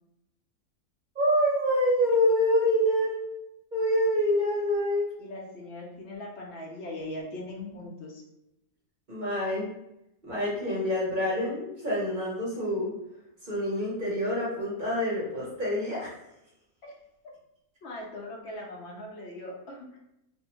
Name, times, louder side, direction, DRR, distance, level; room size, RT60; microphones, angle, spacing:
voice 1, 1.1-3.2 3.7-5.1 9.1-9.7 10.3-12.9 13.4-16.1, equal, 45° right, -6 dB, 0.7 m, -26 dB
voice 2, 5.2-8.2 16.8-16.9 17.8-20.0, left 1 dB, 65° left, -2 dB, 0.7 m, -40 dB
2.5 x 2.0 x 2.9 m, 0.85 s
omnidirectional pair, 1.6 m